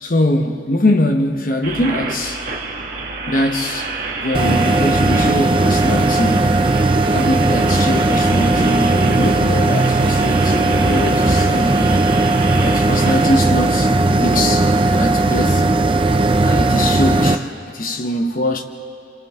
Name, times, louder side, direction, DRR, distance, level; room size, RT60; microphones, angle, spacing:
voice 1, 0.0-2.5 3.3-3.9 4.2-6.6 7.1-12.1 12.6-13.9 14.2-14.7 15.0-15.6 16.4-17.5 17.7-18.6, left 1 dB, 50° left, 1.1 m, -22 dB
sound 1, 1.6-13.3, right 3 dB, 50° right, 1.9 m, -29 dB
sound 2, 4.3-17.4, right 2 dB, 30° right, 0.6 m, -16 dB
27.5 x 26.5 x 3.7 m
head